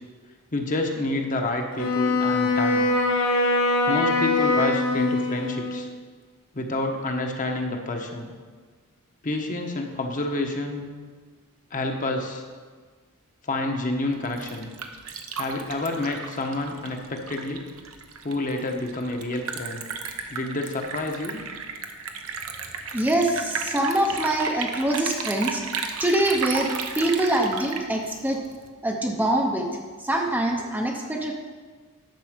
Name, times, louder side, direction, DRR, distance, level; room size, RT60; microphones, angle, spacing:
voice 1, 0.5-2.9 3.9-5.9 6.5-8.3 9.2-10.9 11.7-12.4 13.4-14.7 15.4-17.7 18.2-19.8 20.3-21.4, left 2 dB, 35° left, 3 dB, 1.1 m, -28 dB
Wind instrument woodwind instrument, 1.7-5.9, left 2 dB, 70° left, 1.1 m, -23 dB
Liquid, 14.1-28.7, right 5 dB, 75° right, 0.9 m, -34 dB
voice 2, 22.9-28.4 28.8-29.7 30.0-31.3, right 1 dB, 10° right, 1 dB, 0.7 m, -24 dB
10.5 x 6.7 x 5.1 m, 1.5 s
head